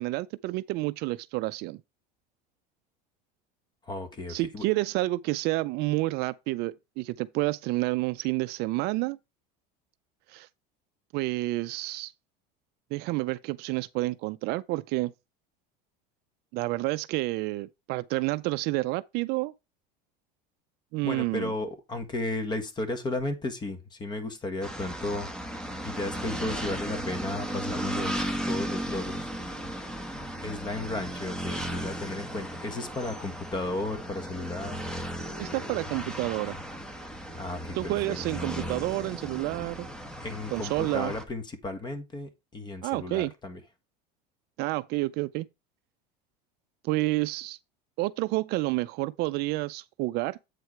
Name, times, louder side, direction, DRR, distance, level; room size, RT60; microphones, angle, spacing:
voice 1, 0.0-1.8 4.3-9.2 10.3-10.5 11.1-12.1 12.9-15.1 16.5-19.5 20.9-21.5 35.4-36.6 37.7-39.9 40.5-41.1 42.8-43.3 44.6-45.5 46.8-47.6 48.0-50.5, right 20 dB, 55° right, 0.4 m, -29 dB
voice 2, 3.9-4.7 21.0-25.3 25.8-29.3 30.4-34.8 37.4-38.2 40.2-43.6, left 2 dB, 20° left, 1.6 m, -34 dB
sound 1, 24.6-41.2, equal, 5° left, 1.2 m, -35 dB
8.2 x 4.7 x 4.5 m
supercardioid pair, 130°, 20 cm